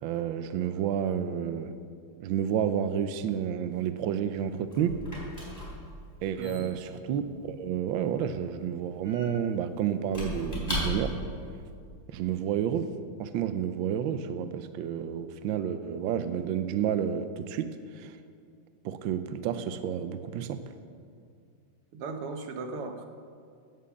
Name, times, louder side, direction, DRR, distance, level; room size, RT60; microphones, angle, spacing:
voice 1, 0.0-1.8 2.2-5.0 6.2-11.2 12.1-18.2 18.8-20.7, right 9 dB, 70° right, 10 dB, 1.3 m, -30 dB
Squeak / Wood, 4.2-11.4, left 1 dB, 10° left, 3.7 m, -38 dB
voice 2, 6.4-6.7 21.9-23.1, right 3 dB, 90° right, 6 dB, 2.0 m, -37 dB
17.0 x 7.7 x 7.1 m, 2.3 s
omnidirectional pair, 2.4 m